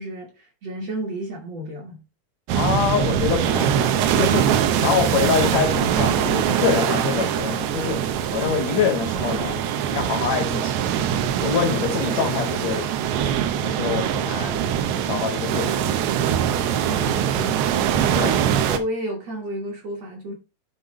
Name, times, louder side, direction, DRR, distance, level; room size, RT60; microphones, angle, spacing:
voice 1, 0.0-2.0 16.4-20.3, right 1 dB, 60° right, 1.8 m, -32 dB
voice 2, 2.5-9.6 9.9-10.8 11.4-12.9 13.6-14.6 15.1-15.8 18.1-18.4, left 7 dB, 85° left, 1.5 m, -25 dB
sound 1, 2.5-18.8, right 9 dB, 90° right, 2.8 m, -23 dB
10.0 x 4.1 x 4.0 m
omnidirectional pair, 4.5 m